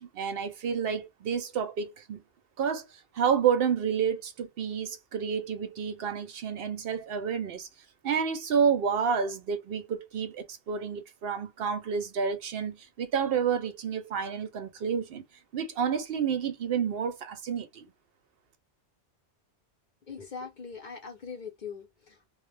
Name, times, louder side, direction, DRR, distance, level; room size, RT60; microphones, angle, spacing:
voice 1, 0.0-2.2 2.6-7.7 8.0-15.2 15.5-17.9, right 7 dB, 65° right, 0.7 m, -29 dB
voice 2, 20.1-22.3, left 5 dB, 50° left, 0.7 m, -41 dB
2.1 x 2.0 x 3.2 m
omnidirectional pair, 1.2 m